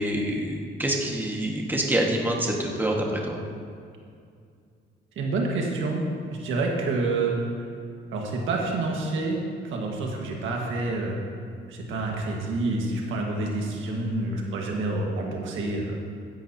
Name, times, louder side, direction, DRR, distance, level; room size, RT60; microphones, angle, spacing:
voice 1, 0.0-3.4, right 1 dB, 10° right, -1 dB, 1.7 m, -26 dB
voice 2, 5.1-6.0 6.4-7.6 8.1-11.2 11.7-16.0, right 2 dB, 80° right, 0 dB, 1.7 m, -28 dB
15.5 x 10.5 x 2.9 m, 2.3 s
cardioid pair, 90°, 20 cm